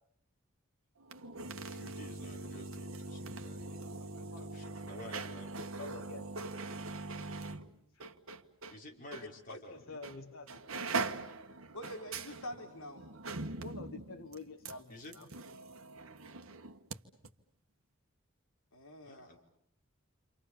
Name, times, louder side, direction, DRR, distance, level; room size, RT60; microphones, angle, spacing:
sound 1, 1.0-8.8 9.1-9.3 10.0-10.2 10.5-17.0 17.2-17.3, right 3 dB, 70° right, 1.6 m, -42 dB
voice 1, 1.6-3.8 4.2-5.8 8.7-10.0 14.9-15.2 19.0-19.4, left 1 dB, 40° left, 0 dB, 5.5 m, -52 dB
voice 2, 3.7-4.8 5.2-5.4 5.8-6.3 9.7-11.0 13.6-15.3, left 3 dB, 70° left, 4 dB, 1.8 m, -49 dB
voice 3, 11.7-13.1 18.7-19.4, left 1 dB, 90° left, 2 dB, 3.1 m, -45 dB
29.5 x 27.0 x 7.1 m, 0.72 s
head